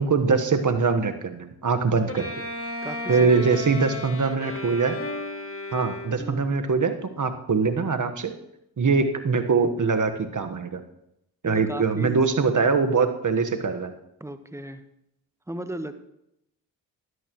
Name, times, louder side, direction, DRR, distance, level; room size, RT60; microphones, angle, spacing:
voice 1, 0.0-2.3 3.1-5.0 5.7-8.3 8.8-10.8 11.4-13.9, right 4 dB, 40° right, 7 dB, 1.4 m, -23 dB
Bowed string instrument, 2.1-6.5, left 2 dB, 30° left, 1.6 m, -34 dB
voice 2, 2.8-3.6 6.2-6.6 11.4-12.2 14.2-14.8 15.5-16.0, right 1 dB, 5° right, 9 dB, 1.2 m, -35 dB
13.0 x 11.0 x 3.1 m, 0.82 s
supercardioid pair, 45°, 46 cm